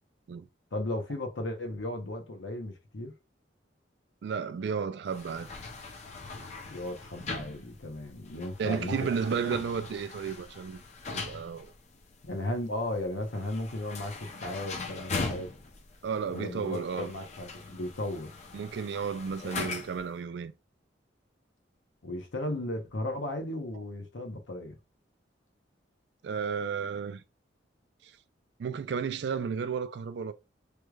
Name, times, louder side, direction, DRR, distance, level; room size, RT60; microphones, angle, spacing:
voice 1, 0.7-3.1 6.6-8.9 9.4-9.5 12.2-15.5 16.3-18.3 19.4-19.7 22.0-24.8, left 1 dB, 85° left, 0.9 m, -35 dB
voice 2, 4.2-5.5 8.6-10.8 11.1-11.7 16.0-17.1 18.5-20.5 26.2-27.2 28.0-28.1 28.6-30.3, right 6 dB, 60° right, 0.3 m, -33 dB
sound 1, 5.1-20.1, left 3 dB, 40° left, 0.6 m, -41 dB
3.2 x 3.1 x 2.3 m
head